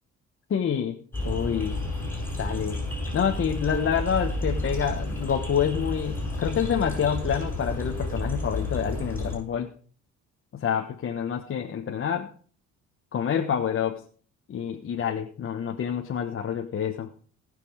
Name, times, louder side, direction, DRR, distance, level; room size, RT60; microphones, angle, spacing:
voice 1, 0.5-1.0 1.2-1.7 2.4-2.8 3.1-9.7 10.5-12.3 13.1-14.0 14.5-17.1, left 8 dB, 45° left, 3 dB, 1.3 m, -27 dB
sound 1, 1.1-9.4, left 1 dB, 5° left, 7.2 m, -31 dB
19.5 x 6.9 x 5.0 m, 0.43 s
cardioid pair, 115°, 31 cm